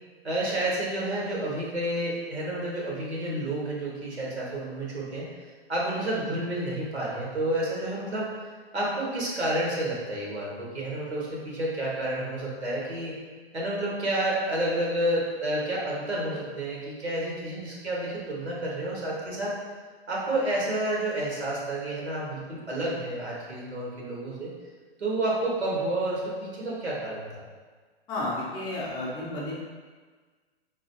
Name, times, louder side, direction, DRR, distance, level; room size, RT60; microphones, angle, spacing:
voice 1, 0.2-5.3 5.7-8.3 8.7-13.1 13.5-19.6 20.1-24.5 25.0-27.4, right 1 dB, 90° right, -5 dB, 1.1 m, -30 dB
voice 2, 28.1-29.5, left 1 dB, 15° left, -4 dB, 0.5 m, -32 dB
3.9 x 2.5 x 2.7 m, 1.5 s
figure-of-eight pair, 115°, 32 cm